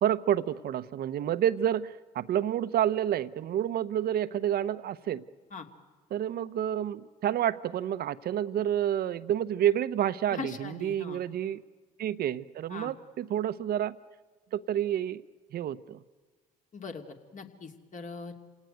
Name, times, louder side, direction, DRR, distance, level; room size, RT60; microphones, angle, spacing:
voice 1, 0.0-5.2 6.1-11.6 12.0-14.0 14.5-15.2 15.5-16.0, right 10 dB, 55° right, 15 dB, 1.0 m, -29 dB
voice 2, 10.3-11.2 12.7-12.9 16.7-18.4, left 5 dB, 45° left, 4 dB, 2.9 m, -41 dB
28.0 x 18.0 x 9.3 m, 1.4 s
hypercardioid pair, 60°, 19 cm